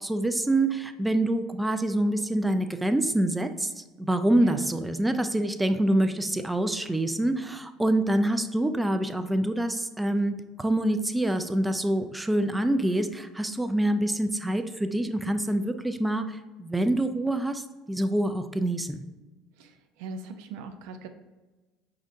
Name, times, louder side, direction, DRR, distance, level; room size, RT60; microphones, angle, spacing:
voice 1, 0.0-19.0, right 1 dB, 10° right, 8 dB, 0.4 m, -26 dB
voice 2, 4.4-4.7 19.6-21.1, right 4 dB, 75° right, 6 dB, 0.4 m, -39 dB
5.1 x 3.8 x 2.5 m, 1.2 s
hypercardioid pair, 80°, 0 cm